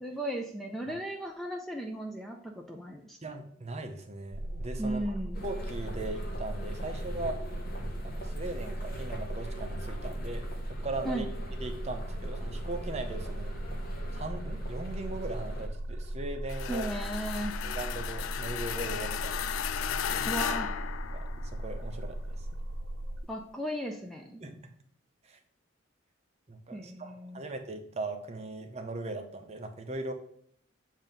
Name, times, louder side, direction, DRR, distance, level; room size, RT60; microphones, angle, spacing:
voice 1, 0.0-3.2 4.8-5.4 11.0-11.3 16.7-17.6 20.2-20.8 23.3-24.4 26.7-27.4, right 1 dB, ahead, 1 dB, 0.4 m, -36 dB
voice 2, 3.2-5.2 5.4-7.5 8.0-11.2 11.6-13.6 14.1-16.9 17.6-19.4 19.8-20.2 21.1-22.4 24.4-24.6 25.2-25.4 26.5-30.1, right 2 dB, 35° right, 5 dB, 0.7 m, -39 dB
sound 1, 4.3-23.2, right 1 dB, 70° right, 0.7 m, -37 dB
sound 2, 5.3-15.7, equal, 45° left, 0.9 m, -44 dB
sound 3, 16.5-21.7, left 9 dB, 80° left, 0.3 m, -35 dB
7.4 x 2.7 x 5.1 m, 0.64 s
head